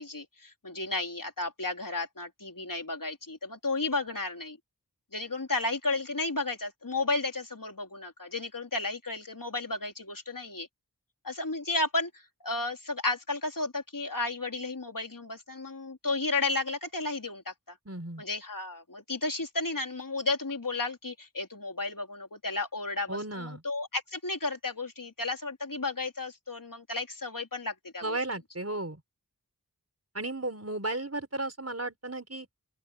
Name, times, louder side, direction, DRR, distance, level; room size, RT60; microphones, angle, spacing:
voice 1, 0.0-4.6 5.1-10.7 11.2-17.8 18.2-28.2, left 3 dB, 65° left, 3.6 m, -33 dB
voice 2, 17.9-18.2 23.1-23.6 28.0-29.0 30.1-32.5, right 2 dB, 45° right, 4.9 m, -34 dB
open air
wide cardioid pair, 40°, 36 cm